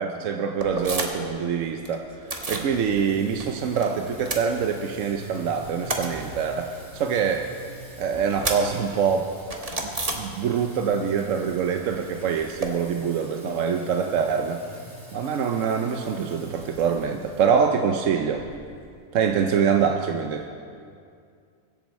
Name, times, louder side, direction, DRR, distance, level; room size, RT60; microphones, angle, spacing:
voice 1, 0.0-7.5 8.0-9.3 9.8-14.6 15.1-18.4 19.1-20.5, right 6 dB, 70° right, 4 dB, 1.0 m, -25 dB
sound 1, 0.6-1.4 1.6-2.7 3.1-3.9 4.1-5.1 5.4-10.8 11.1-12.7, right 2 dB, 30° right, 1.2 m, -33 dB
Singing, 2.7-20.3, right 1 dB, 50° right, 2.6 m, -46 dB
23.0 x 7.9 x 4.2 m, 2.3 s
omnidirectional pair, 1.4 m